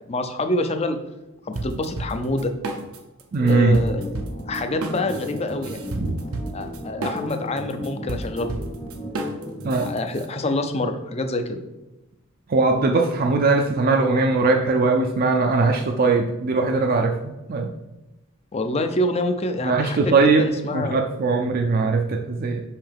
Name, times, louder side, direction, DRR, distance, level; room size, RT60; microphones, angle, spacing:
voice 1, 0.1-1.0 1.4-2.5 3.5-4.1 4.5-5.8 6.5-8.6 9.8-11.6 18.5-21.0, left 1 dB, 30° left, 8 dB, 0.5 m, -26 dB
sound 1, 1.5-3.2 3.5-10.3, right 2 dB, 90° right, 0.7 m, -32 dB
sound 2, 3.3-10.0, left 1 dB, 55° left, 1.8 m, -35 dB
voice 2, 3.3-3.8 6.0-6.2 9.6-9.9 12.5-17.7 19.6-22.6, right 3 dB, 45° right, 2 dB, 0.4 m, -20 dB
5.6 x 5.4 x 3.5 m, 1.0 s
head